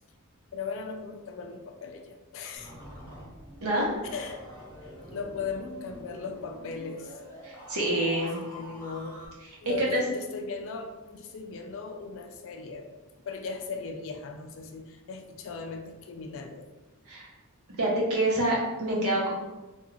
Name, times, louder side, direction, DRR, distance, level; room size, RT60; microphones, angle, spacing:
voice 1, 0.5-2.7 4.1-4.5 4.8-7.2 8.4-9.2 9.6-12.9 13.3-16.6, left 5 dB, 60° left, 4 dB, 0.4 m, -38 dB
sound 1, 2.6-9.3, left 1 dB, 20° right, 0.9 m, -46 dB
voice 2, 3.6-3.9 7.4-8.4 9.8-10.0 17.1-17.3 17.8-19.3, right 1 dB, 80° right, -4 dB, 0.8 m, -26 dB
2.4 x 2.3 x 3.0 m, 1.1 s
head